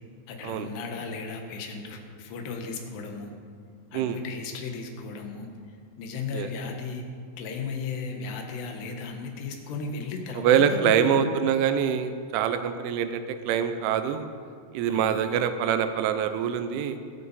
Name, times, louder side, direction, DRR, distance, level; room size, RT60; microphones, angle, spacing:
voice 1, 0.3-3.3 3.9-5.5 6.0-7.0 7.4-11.3 14.9-15.4, left 4 dB, 70° left, 3 dB, 3.3 m, -35 dB
voice 2, 10.3-14.3 14.7-17.0, right 8 dB, 90° right, 9 dB, 3.2 m, -25 dB
22.0 x 9.1 x 4.2 m, 2.1 s
omnidirectional pair, 5.4 m